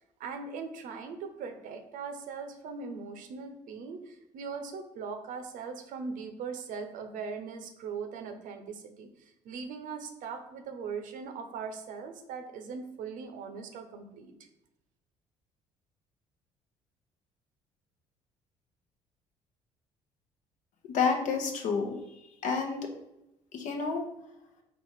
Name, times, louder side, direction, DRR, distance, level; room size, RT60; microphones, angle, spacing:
voice 1, 0.2-14.3, right 5 dB, 65° right, 6 dB, 0.6 m, -40 dB
voice 2, 20.9-22.0 22.4-22.8 23.5-24.0, left 5 dB, 65° left, 4 dB, 0.8 m, -29 dB
4.0 x 2.4 x 4.6 m, 0.88 s
hypercardioid pair, 60°, 14 cm